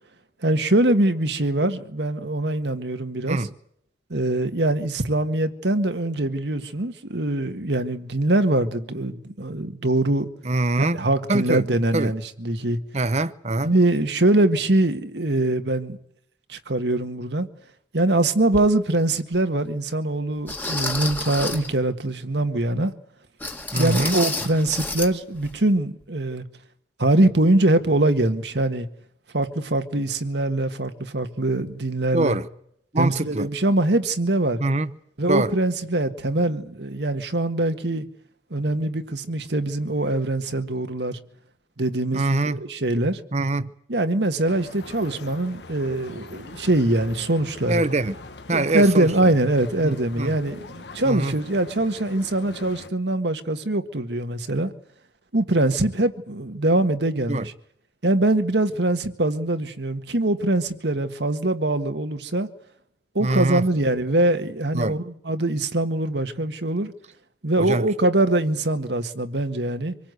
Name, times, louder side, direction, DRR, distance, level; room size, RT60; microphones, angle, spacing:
voice 1, 0.4-3.5 4.1-10.3 10.8-12.8 13.6-16.0 16.5-17.5 17.9-22.9 23.8-26.4 27.0-28.9 29.3-32.4 33.0-34.6 35.2-38.1 38.5-41.2 41.8-43.2 43.9-47.8 48.5-54.7 55.3-57.5 58.0-62.5 63.2-66.9 67.4-69.9, right 2 dB, 75° right, 1.7 m, -23 dB
voice 2, 10.4-11.0 11.3-11.6 11.9-12.1 12.9-13.7 23.7-24.2 32.1-32.5 32.9-33.5 34.6-34.9 35.3-35.5 42.1-42.6 43.3-43.7 47.7-48.2 48.5-49.3 49.8-50.3 51.0-51.3 57.3-57.5 63.2-63.6 64.7-65.0 67.6-67.8, right 2 dB, 40° right, 0.9 m, -23 dB
sound 1, 18.5-18.7 19.3-19.4 20.5-21.7 23.4-25.1 25.4-25.6 26.0-26.1, left 2 dB, 10° left, 1.6 m, -29 dB
sound 2, 44.5-52.9, left 3 dB, 80° left, 1.3 m, -42 dB
25.5 x 17.5 x 8.1 m
head